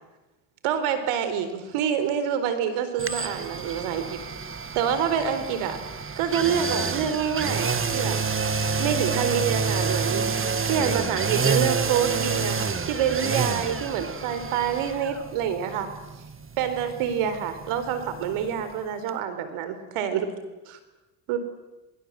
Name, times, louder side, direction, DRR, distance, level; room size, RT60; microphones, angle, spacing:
voice 1, 0.6-4.2 4.4-5.8 6.2-8.2 8.8-10.3 10.7-15.9 16.6-20.3 20.7-20.8 21.3-21.4, right 8 dB, 80° right, 10 dB, 4.3 m, -27 dB
sound 1, 3.0-18.8 19.1-19.2, right 5 dB, 25° right, 1.9 m, -29 dB
27.5 x 21.5 x 7.6 m, 1.1 s
supercardioid pair, 85°, 50 cm